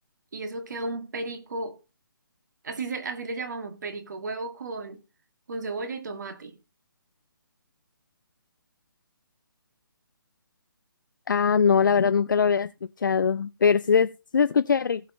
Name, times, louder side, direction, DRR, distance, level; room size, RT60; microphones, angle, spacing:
voice 1, 0.3-1.8 2.6-5.0 5.5-6.5, right 3 dB, 55° right, 1.9 m, -34 dB
voice 2, 11.3-12.7 13.0-15.0, left 6 dB, 60° left, 0.4 m, -21 dB
17.0 x 6.6 x 2.8 m
figure-of-eight pair, 140°, 12 cm